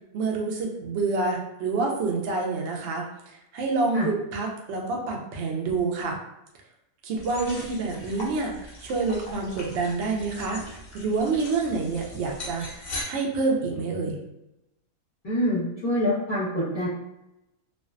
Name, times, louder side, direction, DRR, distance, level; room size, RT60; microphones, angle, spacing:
voice 1, 0.1-3.1 3.5-6.2 7.0-12.7 13.1-14.2, right 3 dB, 65° right, 0 dB, 0.7 m, -27 dB
sound 1, 7.2-13.0, left 1 dB, 60° left, 0.4 m, -40 dB
voice 2, 15.2-16.9, left 1 dB, 35° left, -12 dB, 1.0 m, -26 dB
2.5 x 2.1 x 2.4 m, 0.87 s
omnidirectional pair, 1.5 m